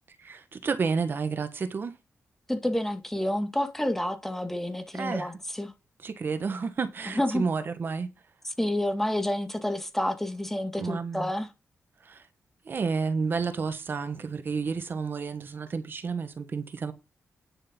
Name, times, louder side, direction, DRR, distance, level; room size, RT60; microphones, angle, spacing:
voice 1, 0.2-1.9 4.9-5.3 6.0-8.1 10.8-11.3 12.0-12.3 12.6-16.9, right 5 dB, 50° right, 1.5 m, -31 dB
voice 2, 2.5-5.7 7.2-7.4 8.6-11.5, left 1 dB, 5° left, 2.1 m, -29 dB
10.5 x 6.6 x 5.3 m
cardioid pair, 95°, 5 cm